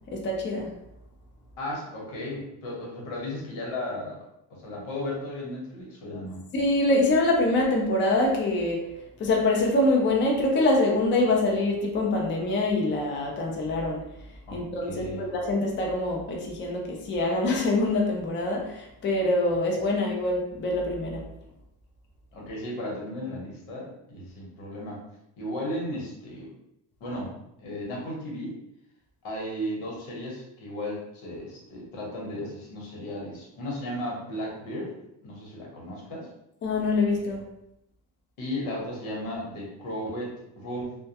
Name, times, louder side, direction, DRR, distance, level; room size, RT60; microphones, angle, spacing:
voice 1, 0.1-0.7 6.5-8.9 9.2-14.1 14.5-21.2 36.6-37.4, left 2 dB, 25° left, -1 dB, 0.4 m, -25 dB
voice 2, 1.6-4.2 4.5-6.4 14.5-15.3 22.3-25.0 25.4-26.5 27.0-27.3 27.6-28.6 29.2-34.9 35.2-36.3 38.4-41.0, left 1 dB, 90° left, -3 dB, 1.1 m, -35 dB
2.2 x 2.1 x 2.7 m, 0.82 s
cardioid pair, 140°, 48 cm